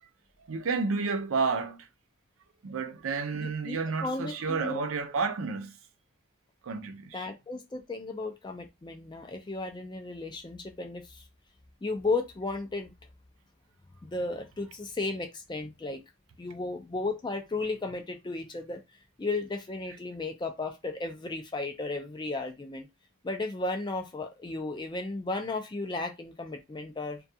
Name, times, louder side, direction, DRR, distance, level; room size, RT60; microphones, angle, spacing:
voice 1, 0.5-1.9 2.6-5.7 6.6-7.3, right 4 dB, 75° right, 0.4 m, -31 dB
voice 2, 3.4-4.9 7.1-11.2 11.8-12.9 14.0-16.0 16.4-18.8 19.2-22.9 23.2-27.2, left 3 dB, 20° left, 0.3 m, -34 dB
2.3 x 2.2 x 2.6 m
head